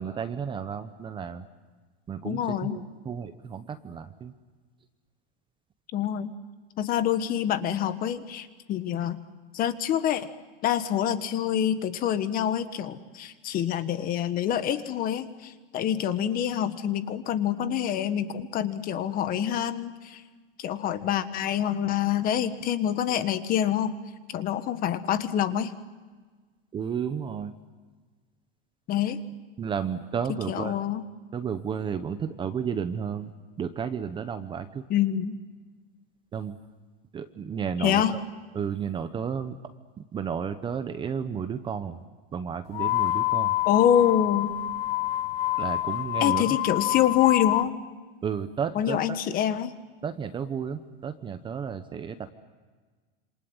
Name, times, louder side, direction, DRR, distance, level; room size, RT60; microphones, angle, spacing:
voice 1, 0.0-1.4 2.1-4.3 26.7-27.5 29.6-30.7 31.3-33.3 33.6-34.8 36.3-36.6 37.1-38.2 38.5-39.6 40.0-42.0 42.3-43.6 45.6-46.6 48.2-49.2 50.0-52.3, right 7 dB, 15° right, 10 dB, 0.9 m, -32 dB
voice 2, 2.2-2.8 5.9-6.3 6.8-9.2 9.5-10.3 10.6-20.2 20.6-23.9 24.3-25.7 28.9-29.2 30.3-31.0 34.9-35.4 37.8-38.1 43.6-44.5 46.2-47.7 48.7-49.7, left 10 dB, 30° left, 11 dB, 1.4 m, -26 dB
sound 1, 42.7-47.7, left 15 dB, 70° left, 1.0 m, -27 dB
27.5 x 27.0 x 7.9 m, 1.4 s
supercardioid pair, 150°, 30 cm